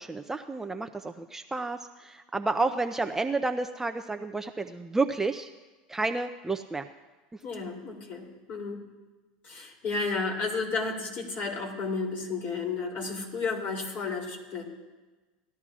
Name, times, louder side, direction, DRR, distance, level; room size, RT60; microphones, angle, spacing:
voice 1, 0.0-5.5 5.9-6.9, right 3 dB, 10° right, 6 dB, 0.5 m, -30 dB
voice 2, 7.4-8.8 9.4-14.6, left 4 dB, 45° left, 0 dB, 3.0 m, -32 dB
19.0 x 12.5 x 2.4 m, 1.2 s
hypercardioid pair, 105°, 4 cm